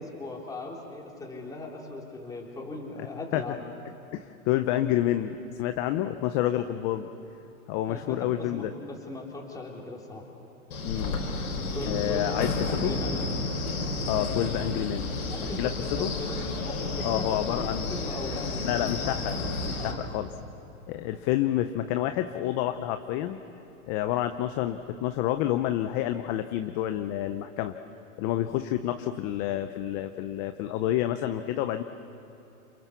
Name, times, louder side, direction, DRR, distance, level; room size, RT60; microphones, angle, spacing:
voice 1, 0.0-3.6 7.9-10.2 11.7-13.2 15.2-18.9 19.8-20.0, left 2 dB, 10° left, -1 dB, 3.3 m, -38 dB
voice 2, 4.1-7.1 7.7-8.7 10.8-11.2 11.9-12.9 14.1-15.1 15.4-15.7 16.0-16.1 17.0-17.9 18.6-20.3 20.9-23.4 23.9-27.7 28.2-31.8, left 13 dB, 25° left, 9 dB, 0.6 m, -29 dB
Wind, 10.7-19.9, left 3 dB, 85° left, 5.4 m, -31 dB
29.0 x 27.5 x 7.1 m, 3.0 s
hypercardioid pair, 140°, 44 cm